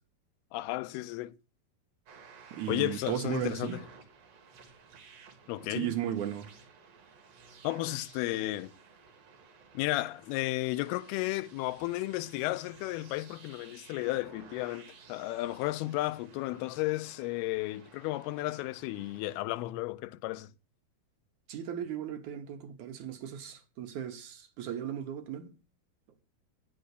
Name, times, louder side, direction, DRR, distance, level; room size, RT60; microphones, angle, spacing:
voice 1, 0.5-1.3 2.7-3.8 5.5-5.9 7.6-8.7 9.7-20.5, left 18 dB, 80° left, 2.5 m, -33 dB
sound 1, 2.1-19.4, right 5 dB, 50° right, 2.3 m, -55 dB
voice 2, 2.5-3.8 5.7-6.5 21.5-25.5, right 10 dB, 70° right, 1.9 m, -36 dB
9.1 x 6.2 x 8.1 m
omnidirectional pair, 4.7 m